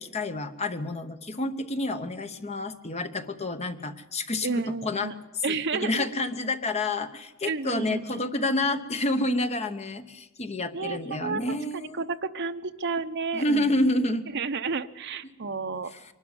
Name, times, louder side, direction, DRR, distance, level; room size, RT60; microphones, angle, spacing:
voice 1, 0.0-5.1 5.5-12.0 13.3-14.3 15.9-16.0, left 2 dB, 30° left, 8 dB, 1.0 m, -29 dB
voice 2, 4.4-5.1 5.4-6.1 7.4-8.2 10.7-11.4 11.7-13.9 14.3-16.1, right 4 dB, 55° right, 8 dB, 0.8 m, -31 dB
23.5 x 12.5 x 9.7 m, 1.0 s
head